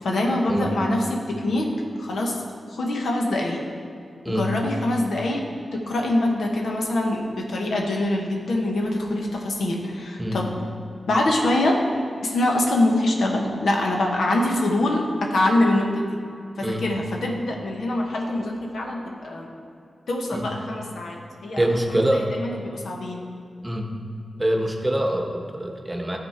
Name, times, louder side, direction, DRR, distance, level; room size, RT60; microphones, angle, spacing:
voice 1, 0.0-2.4 2.8-3.6 4.2-5.5 5.7-10.5 11.1-11.8 12.2-16.1 16.6-19.5 20.1-23.3, left 1 dB, 80° left, 0 dB, 1.1 m, -24 dB
voice 2, 21.6-22.3 23.6-23.9 24.4-26.2, right 1 dB, 20° right, 2 dB, 1.0 m, -24 dB
11.5 x 4.2 x 4.3 m, 2.5 s
cardioid pair, 60°, 0 cm